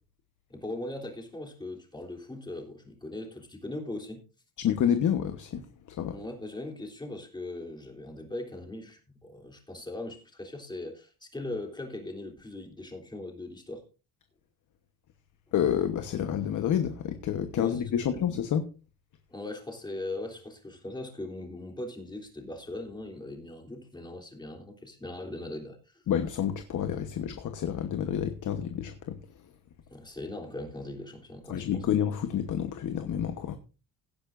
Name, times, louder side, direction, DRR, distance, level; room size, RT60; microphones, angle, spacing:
voice 1, 0.5-4.2 6.1-13.8 17.5-18.2 19.3-26.0 29.9-31.9, left 2 dB, 10° left, 3.3 m, -40 dB
voice 2, 4.6-5.6 5.9-6.2 15.5-18.6 26.1-29.2 31.5-33.6, left 9 dB, 55° left, 1.1 m, -29 dB
17.0 x 10.5 x 2.6 m
cardioid pair, 120°, 36 cm